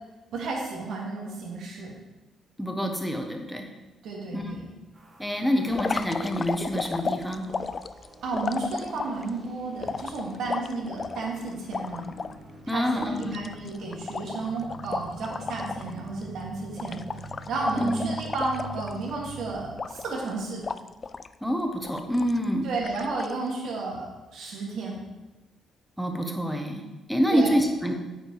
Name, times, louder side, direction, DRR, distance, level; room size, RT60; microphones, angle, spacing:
voice 1, 0.3-1.9 4.0-4.7 8.2-12.1 12.6-20.6 22.6-25.0 27.3-27.5, right 3 dB, 75° right, -3 dB, 2.5 m, -32 dB
voice 2, 2.6-3.7 4.3-4.5 5.2-7.4 12.7-13.3 17.8-18.1 21.4-22.7 26.0-27.9, equal, ahead, 3 dB, 1.2 m, -27 dB
sound 1, 4.9-19.5, right 2 dB, 35° right, 3.1 m, -46 dB
sound 2, 5.7-9.3 9.8-12.3 12.7-12.8 13.0-15.9 16.2-16.4 16.8-19.3 19.8-20.3 20.6-21.3 21.8-22.4 22.8-23.3, left 5 dB, 35° left, 0.3 m, -34 dB
8.8 x 5.1 x 4.8 m, 1.1 s
cardioid pair, 90°, 0 cm